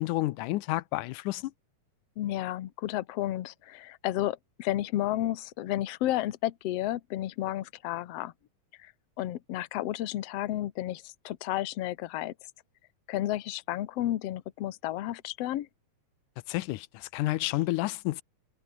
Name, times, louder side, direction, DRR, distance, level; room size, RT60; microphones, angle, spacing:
voice 1, 0.0-1.5 16.5-18.2, left 18 dB, 90° left, 2.2 m, -30 dB
voice 2, 2.2-8.3 8.8-8.9 9.2-12.3 13.1-15.7, left 14 dB, 60° left, 1.9 m, -32 dB
omnidirectional pair, 3.5 m